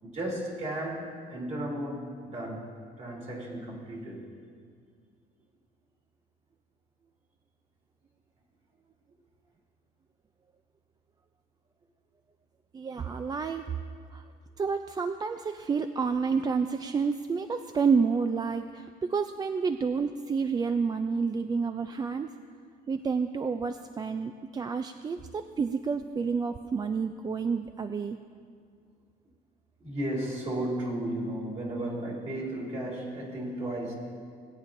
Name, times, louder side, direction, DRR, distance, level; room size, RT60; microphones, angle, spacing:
voice 1, 0.0-2.7 3.0-4.2 29.8-33.9, right 1 dB, 40° right, -3 dB, 2.9 m, -34 dB
voice 2, 12.7-13.7 14.1-14.2 14.6-22.3 22.9-28.2, right 5 dB, 25° right, 8 dB, 0.3 m, -29 dB
19.5 x 9.0 x 2.6 m, 2.2 s
cardioid pair, 110°, 17 cm